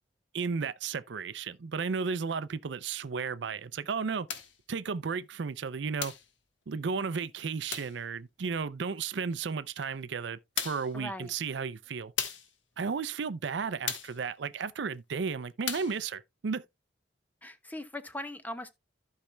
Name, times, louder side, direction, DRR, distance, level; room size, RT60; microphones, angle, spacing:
voice 1, 0.3-4.3 4.7-6.1 6.7-12.1 12.8-16.6, right 5 dB, 70° right, 0.5 m, -34 dB
sound 1, 4.3-4.6 6.0-6.3 7.7-8.0 9.8-9.9 10.6-10.9 12.2-12.5 13.9-14.2 15.7-16.0, left 8 dB, 90° left, 1.3 m, -35 dB
voice 2, 10.9-11.3 17.4-18.7, left 1 dB, 10° left, 0.7 m, -40 dB
15.0 x 5.6 x 2.2 m
head